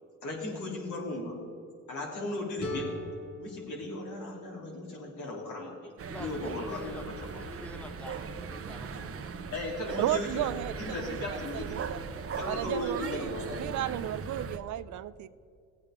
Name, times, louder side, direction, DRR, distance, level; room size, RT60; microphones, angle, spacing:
voice 1, 0.2-1.4 1.9-2.9 3.4-5.9 6.2-7.0 7.3-7.4 9.5-10.5 10.8-11.8 12.3-13.6, left 2 dB, 75° left, -2 dB, 3.3 m, -36 dB
sound 1, 2.6-5.5, left 2 dB, 50° left, 2.8 m, -41 dB
sound 2, 6.0-14.6, right 5 dB, 50° right, 0.9 m, -39 dB
voice 2, 6.1-9.4 9.9-10.1 12.1-12.3, left 1 dB, 5° left, 6 dB, 1.1 m, -46 dB
voice 3, 10.0-12.0 12.5-15.3, right 12 dB, 70° right, 14 dB, 0.6 m, -34 dB
16.5 x 8.7 x 3.7 m, 2.3 s
cardioid pair, 90°, 30 cm